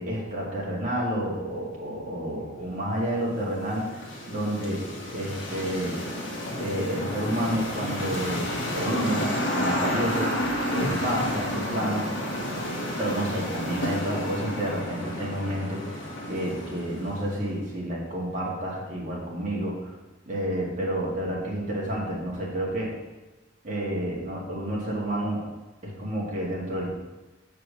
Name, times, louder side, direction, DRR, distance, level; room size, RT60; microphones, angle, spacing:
voice 1, 0.0-4.8 5.1-6.0 6.5-10.4 10.7-12.1 13.0-19.9 20.3-22.9 23.6-25.4 25.8-26.9, right 1 dB, 40° right, -5 dB, 2.1 m, -30 dB
sound 1, 3.0-17.5, equal, 70° left, 1.6 m, -31 dB
6.8 x 4.7 x 6.3 m, 1.1 s
head